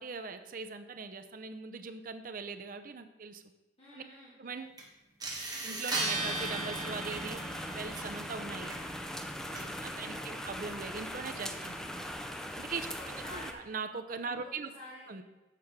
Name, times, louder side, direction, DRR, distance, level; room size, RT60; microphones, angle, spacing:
voice 1, 0.0-3.4 3.9-4.0 4.4-4.8 5.6-7.4 7.7-8.8 9.5-12.0 12.5-12.9 13.3-14.7 15.1-15.2, right 4 dB, 50° right, 8 dB, 0.6 m, -41 dB
voice 2, 3.8-4.4 9.9-10.5 13.0-13.6 14.4-15.1, left 1 dB, 35° left, -8 dB, 1.7 m, -49 dB
sound 1, 4.8-4.9 5.2-10.2, right 2 dB, 20° right, 1.3 m, -38 dB
sound 2, 6.1-13.5, equal, 5° left, 0.5 m, -40 dB
7.5 x 5.0 x 5.9 m, 1.1 s
head